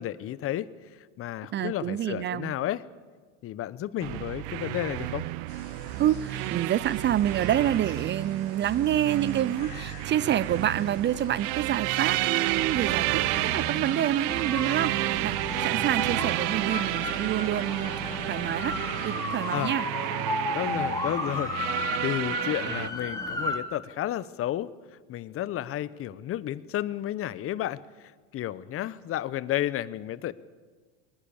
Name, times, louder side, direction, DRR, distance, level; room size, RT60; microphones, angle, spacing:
voice 1, 0.0-2.8 3.4-5.3 19.5-19.7 20.5-21.5 22.0-30.3, left 12 dB, 40° left, 17 dB, 1.0 m, -32 dB
voice 2, 1.5-2.6 6.0-18.8 19.0-19.9, right 11 dB, 30° right, 19 dB, 0.6 m, -28 dB
sound 1, 4.0-22.9, right 18 dB, 60° right, 0.8 m, -31 dB
sound 2, 5.5-19.7, left 5 dB, 80° left, 6.0 m, -49 dB
sound 3, 12.7-23.6, left 2 dB, 10° left, 3.0 m, -34 dB
20.5 x 20.0 x 7.2 m, 1.5 s
supercardioid pair, 100°, 36 cm